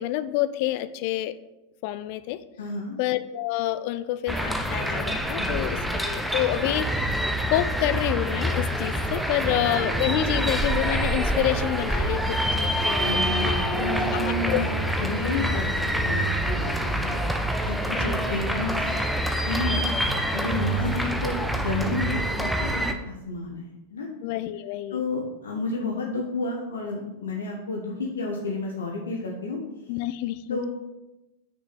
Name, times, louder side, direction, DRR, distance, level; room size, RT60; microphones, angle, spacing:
voice 1, 0.0-1.4 1.8-2.4 3.0-7.1 7.5-13.6 14.1-14.6 18.0-18.2 20.8-20.9 24.2-25.0 29.9-30.7, left 14 dB, 45° left, 14 dB, 0.4 m, -28 dB
voice 2, 2.6-3.0 5.4-5.9 9.4-9.7 13.0-14.7 15.0-17.2 17.6-19.0 19.3-19.9 20.3-24.1 24.9-29.6 30.5-30.7, left 3 dB, 65° left, 0 dB, 1.2 m, -31 dB
sound 1, 4.3-22.9, right 1 dB, ahead, 0.6 m, -26 dB
6.3 x 6.0 x 5.4 m, 0.98 s
figure-of-eight pair, 90°, 0 cm